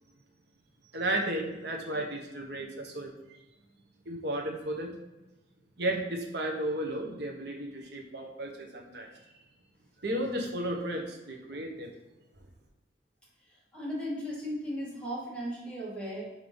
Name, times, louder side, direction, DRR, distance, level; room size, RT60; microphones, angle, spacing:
voice 1, 0.9-3.1 4.0-4.9 5.8-9.1 10.0-11.9, right 1 dB, 55° right, 2 dB, 1.3 m, -33 dB
voice 2, 13.4-16.2, equal, 5° left, -7 dB, 2.4 m, -36 dB
5.4 x 4.7 x 5.5 m, 1.0 s
head